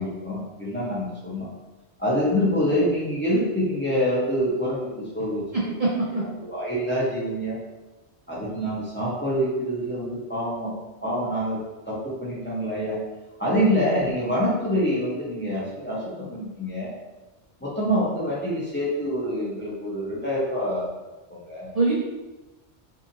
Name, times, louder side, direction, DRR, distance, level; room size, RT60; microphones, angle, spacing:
voice 1, 0.0-1.5 2.0-5.7 6.1-7.6 8.3-10.7 11.0-11.6 11.9-13.0 13.4-17.0 17.6-20.9 21.3-21.7, equal, 15° left, -7 dB, 0.5 m, -26 dB
voice 2, 5.5-6.2 21.7-21.9, right 3 dB, 55° right, -6 dB, 0.4 m, -24 dB
2.7 x 2.5 x 2.5 m, 1.1 s
omnidirectional pair, 1.2 m